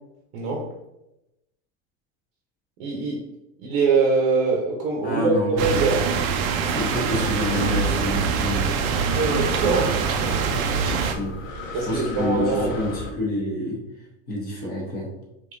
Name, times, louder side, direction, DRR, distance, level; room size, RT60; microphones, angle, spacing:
voice 1, 0.3-0.7 2.8-3.2 3.6-6.0 9.1-11.0 11.7-12.8, right 4 dB, 50° right, -1 dB, 0.9 m, -23 dB
voice 2, 5.0-5.6 6.8-8.7 11.0-11.3 11.9-12.9 13.2-13.8 14.3-15.1, left 1 dB, 25° left, -3 dB, 1.1 m, -27 dB
sound 1, 5.6-11.2, right 6 dB, 85° right, 0.7 m, -24 dB
Breathing, 6.0-13.1, left 1 dB, 75° left, 1.2 m, -35 dB
5.0 x 2.9 x 2.6 m, 0.90 s
supercardioid pair, 150°, 40 cm